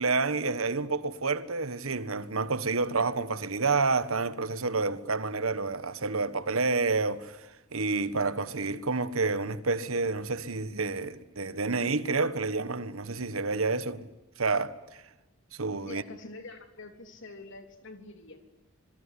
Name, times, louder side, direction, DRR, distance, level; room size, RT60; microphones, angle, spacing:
voice 1, 0.0-14.1 14.4-14.7 15.5-16.0, right 3 dB, 80° right, 1.4 m, -29 dB
voice 2, 15.9-18.4, left 2 dB, 60° left, 3.6 m, -45 dB
26.5 x 22.0 x 9.9 m
head